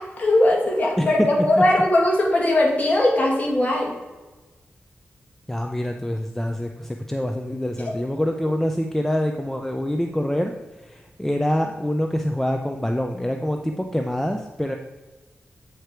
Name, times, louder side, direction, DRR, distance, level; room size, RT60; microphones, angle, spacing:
voice 1, 0.0-3.9, left 1 dB, 35° left, -3 dB, 2.3 m, -19 dB
voice 2, 1.0-1.3 1.6-1.7 5.5-10.5 10.8-14.8, equal, 5° left, 4 dB, 0.5 m, -25 dB
8.0 x 4.9 x 4.5 m, 1.2 s
wide cardioid pair, 85°, 4 cm